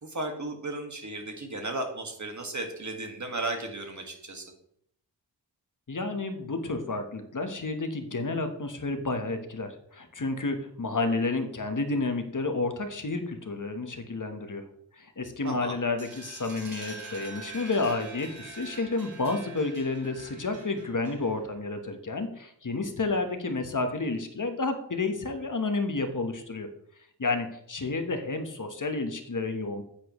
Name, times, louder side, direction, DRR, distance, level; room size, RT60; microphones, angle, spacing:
voice 1, 0.0-4.5 15.4-15.8, right 2 dB, 40° right, 3 dB, 1.8 m, -35 dB
voice 2, 5.9-14.7 15.0-26.7 27.2-29.8, left 3 dB, 45° left, 7 dB, 1.1 m, -30 dB
sound 1, 16.0-21.5, right 3 dB, 75° right, 3.9 m, -45 dB
10.0 x 8.4 x 3.1 m, 0.70 s
wide cardioid pair, 100°, 44 cm